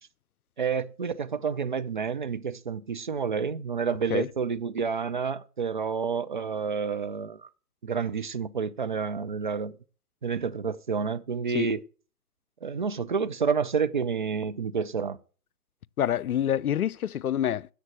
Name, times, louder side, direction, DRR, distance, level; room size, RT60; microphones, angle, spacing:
voice 1, 0.6-7.5 7.8-9.8 10.2-11.8 12.6-15.2, right 6 dB, 35° right, 0.4 m, -29 dB
voice 2, 16.0-17.7, left 10 dB, 70° left, 0.6 m, -27 dB
9.9 x 7.7 x 6.3 m
figure-of-eight pair, 130°, 46 cm